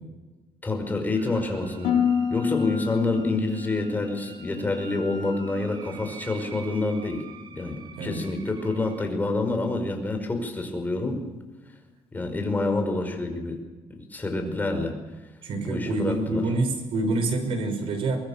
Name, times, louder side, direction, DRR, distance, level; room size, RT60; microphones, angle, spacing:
voice 1, 0.6-2.0 2.3-7.2 7.5-11.2 12.1-13.6 13.9-14.9 15.6-16.4, left 2 dB, 20° left, 5 dB, 5.4 m, -27 dB
sound 1, 1.1-9.1, right 4 dB, 50° right, 2.7 m, -46 dB
Harp, 1.8-5.9 6.2-6.8 7.3-7.6, left 7 dB, 90° left, 6.2 m, -30 dB
voice 2, 14.3-14.8 15.4-18.2, right 2 dB, 70° right, 7 dB, 5.7 m, -27 dB
24.0 x 21.5 x 7.4 m, 1.2 s
cardioid pair, 130°, 10 cm